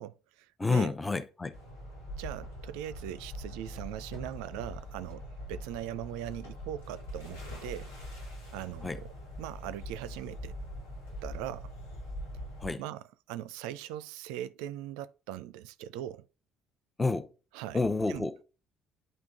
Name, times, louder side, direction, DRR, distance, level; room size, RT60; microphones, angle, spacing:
voice 1, 0.0-0.9 2.2-5.2 5.5-7.9 8.5-9.1 9.4-10.6 11.2-11.7 12.8-16.3 17.5-17.8 18.1-18.3, right 12 dB, 65° right, 0.4 m, -40 dB
voice 2, 0.6-1.5 8.8-9.0 12.6-12.8 17.0-17.3 17.7-18.4, left 3 dB, 15° left, 0.8 m, -29 dB
sound 1, 1.5-12.7, equal, 85° left, 3.5 m, -43 dB
9.2 x 3.6 x 3.6 m
figure-of-eight pair, 50°, 0 cm